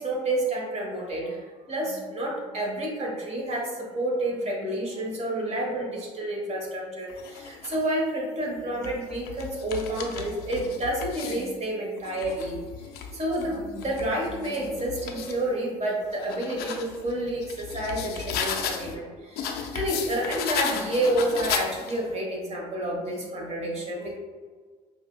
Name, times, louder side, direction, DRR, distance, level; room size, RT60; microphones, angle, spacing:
voice 1, 0.0-12.6 13.1-24.2, right 1 dB, 30° right, -2 dB, 1.3 m, -29 dB
sound 1, 7.1-7.9 8.6-11.5 12.0-15.4 15.9-19.0 19.4-22.1, left 7 dB, 55° left, 0.5 m, -35 dB
5.3 x 2.4 x 2.3 m, 1.5 s
hypercardioid pair, 65°, 20 cm